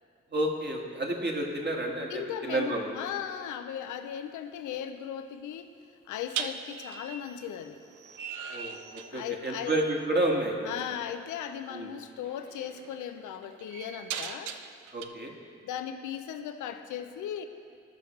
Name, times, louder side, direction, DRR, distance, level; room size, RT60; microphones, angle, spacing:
voice 1, 0.3-3.0 8.5-8.8 9.1-10.7 11.7-11.9 14.9-15.3, right 1 dB, 35° right, 0 dB, 1.8 m, -30 dB
voice 2, 2.1-5.7 6.1-7.8 9.1-9.7 10.6-14.5 15.6-17.4, left 9 dB, 85° left, 8 dB, 0.6 m, -37 dB
sound 1, 3.7-4.0 6.3-9.4 9.6-10.1 11.6-11.7 12.2-15.1, right 7 dB, 80° right, 0.5 m, -40 dB
15.0 x 5.6 x 3.2 m, 2.3 s
supercardioid pair, 40°, 30 cm